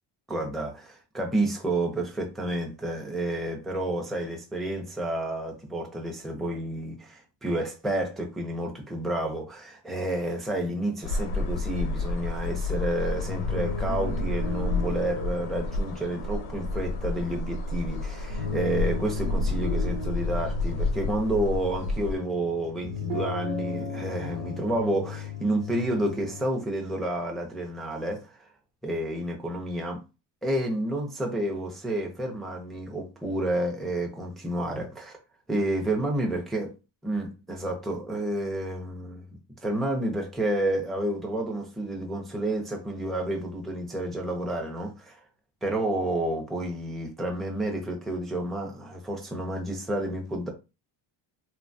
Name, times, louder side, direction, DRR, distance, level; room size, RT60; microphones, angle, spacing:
voice 1, 0.3-28.5 28.8-30.0 30.4-35.2 35.5-36.7 37.0-39.3 39.6-45.2 45.6-50.5, right 1 dB, ahead, 0.5 m, -30 dB
sound 1, 11.0-22.2, left 2 dB, 90° left, 0.7 m, -30 dB
sound 2, 13.1-26.4, left 4 dB, 75° right, 0.9 m, -36 dB
3.0 x 2.2 x 2.6 m
cardioid pair, 105°, 48 cm